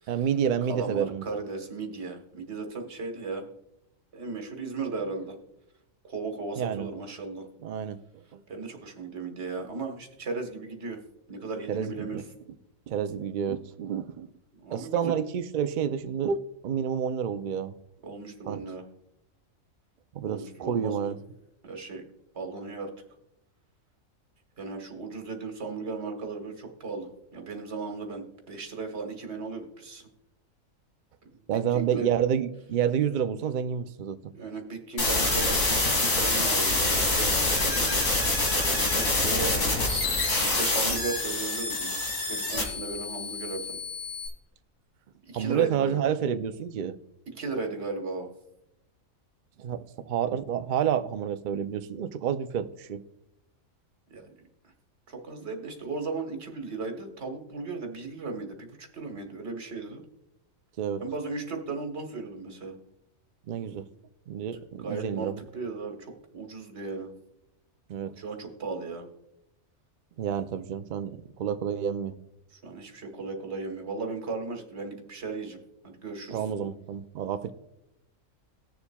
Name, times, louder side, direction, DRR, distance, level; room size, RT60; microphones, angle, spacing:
voice 1, 0.1-1.2 6.6-6.9 7.6-8.0 8.3-8.4 11.7-12.2 12.9-14.3 14.7-17.7 18.5-18.6 20.1-21.2 31.5-34.2 45.3-46.9 49.6-53.0 60.8-61.0 63.5-63.9 64.3-65.4 67.9-68.2 70.2-72.2 76.3-77.5, right 8 dB, 80° right, 0.4 m, -29 dB
voice 2, 0.7-3.5 4.1-5.4 6.0-7.5 8.5-11.0 11.3-12.2 14.6-15.2 18.0-18.8 20.2-21.1 21.6-22.0 22.3-22.9 24.6-30.1 31.5-32.1 34.3-38.1 38.5-39.8 40.5-43.8 45.2-46.0 47.3-48.3 54.1-54.3 55.1-60.0 61.0-62.8 64.5-67.1 68.2-69.1 72.5-76.4, right 4 dB, 55° right, 1.5 m, -36 dB
sound 1, 35.0-44.3, left 2 dB, 80° left, 2.5 m, -26 dB
19.0 x 7.0 x 2.3 m
omnidirectional pair, 1.4 m